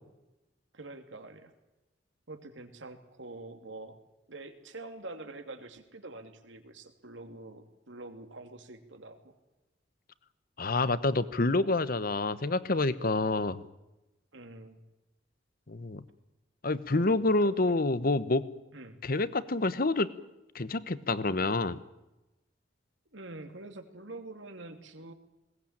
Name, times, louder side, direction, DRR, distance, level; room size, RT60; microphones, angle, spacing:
voice 1, 0.7-1.5 2.3-3.9 4.3-9.3 14.3-14.8 17.0-17.7 18.7-19.0 23.1-25.1, right 2 dB, 80° right, 6 dB, 2.7 m, -46 dB
voice 2, 10.6-13.6 15.7-16.0 16.6-18.5 19.0-20.1 20.5-21.8, left 2 dB, 50° left, 15 dB, 1.0 m, -28 dB
21.0 x 19.0 x 8.8 m, 0.99 s
head